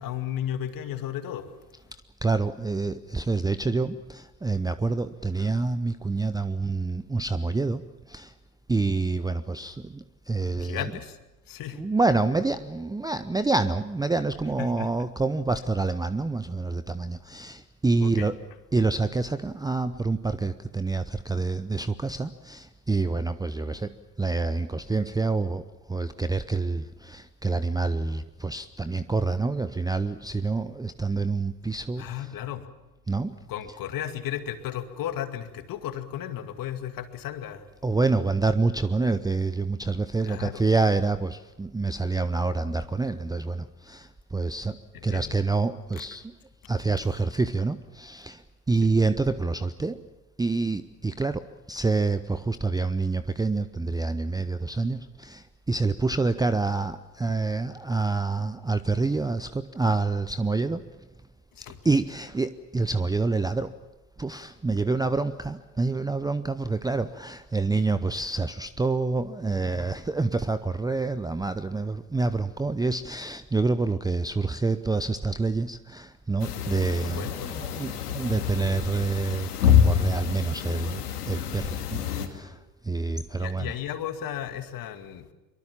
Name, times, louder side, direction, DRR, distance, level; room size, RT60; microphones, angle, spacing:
voice 1, 0.0-1.5 10.6-11.2 11.5-11.8 14.6-15.0 18.0-18.3 32.0-32.7 33.5-37.7 40.2-40.6 44.9-45.3 46.0-46.1 48.8-48.9 61.6-61.8 76.8-77.5 83.3-85.3, left 10 dB, 45° left, 8 dB, 2.3 m, -34 dB
voice 2, 1.9-8.3 8.7-10.8 11.7-18.4 18.7-32.3 33.1-33.4 37.8-46.3 46.7-50.0 50.4-60.8 61.8-63.7 64.2-82.6 82.8-83.7, right 3 dB, 10° right, 13 dB, 0.7 m, -27 dB
sound 1, 76.4-82.3, left 8 dB, 85° left, 2.4 m, -26 dB
23.5 x 23.0 x 7.3 m, 1.1 s
hypercardioid pair, 75°, 45 cm